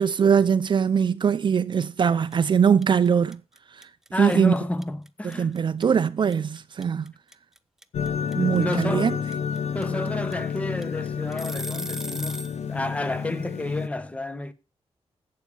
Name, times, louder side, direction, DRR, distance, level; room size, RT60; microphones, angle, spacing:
voice 1, 0.0-3.4 3.7-3.9 4.2-4.5 5.2-7.1 8.3-9.2, right 7 dB, 45° right, 0.7 m, -22 dB
sound 1, 1.3-1.6 1.8-12.6, right 1 dB, 5° right, 0.7 m, -38 dB
voice 2, 4.1-5.5 8.4-9.2 9.7-14.5, left 1 dB, 10° left, 1.1 m, -30 dB
sound 2, 7.9-13.9, left 7 dB, 80° left, 0.8 m, -30 dB
12.0 x 8.7 x 8.4 m
wide cardioid pair, 165°, 11 cm